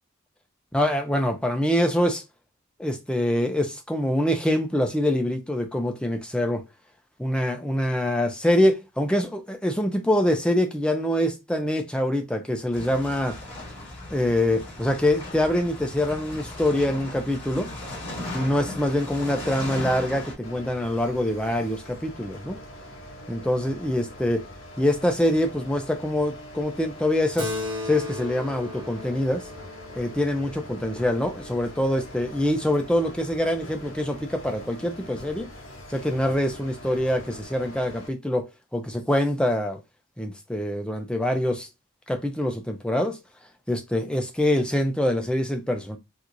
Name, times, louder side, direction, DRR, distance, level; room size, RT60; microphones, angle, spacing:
voice 1, 0.7-2.2 2.8-6.6 7.2-13.4 14.1-17.7 18.3-22.6 23.3-24.5 24.8-27.5 27.8-29.5 30.0-35.5 35.9-39.8 40.2-41.7 42.1-43.2 43.7-46.0, left 1 dB, 5° left, 0.4 m, -25 dB
sound 1, 12.7-20.3, left 1 dB, 25° left, 2.2 m, -37 dB
sound 2, 20.4-38.1, left 1 dB, 65° left, 0.7 m, -43 dB
Keyboard (musical), 27.4-32.3, left 2 dB, 20° right, 0.8 m, -37 dB
4.4 x 2.4 x 2.5 m
head